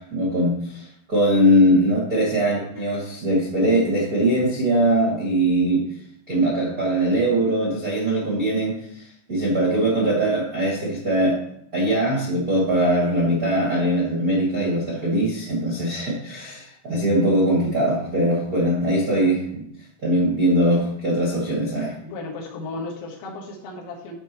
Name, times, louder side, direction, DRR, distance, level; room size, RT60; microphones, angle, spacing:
voice 1, 0.0-5.9 6.3-11.4 11.7-19.6 20.0-21.9, right 1 dB, 50° right, -6 dB, 1.0 m, -21 dB
voice 2, 22.0-24.1, left 3 dB, 80° left, 0 dB, 4.0 m, -34 dB
14.0 x 5.4 x 3.1 m, 0.70 s
omnidirectional pair, 5.9 m